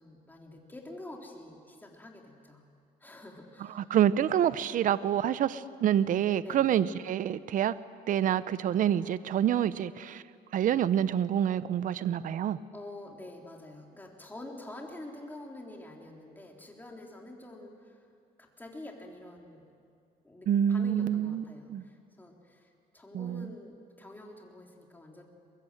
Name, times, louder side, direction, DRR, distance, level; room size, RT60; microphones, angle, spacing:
voice 1, 0.0-2.6 3.0-3.8 6.4-6.8 12.7-18.1 18.4-19.7 20.2-25.2, left 1 dB, 10° left, 0 dB, 3.8 m, -47 dB
voice 2, 3.7-7.8 8.1-10.2 10.5-12.6 20.5-21.8 23.1-23.5, right 10 dB, 50° right, 16 dB, 0.7 m, -27 dB
22.5 x 22.5 x 7.8 m, 2.3 s
cardioid pair, 110°, 17 cm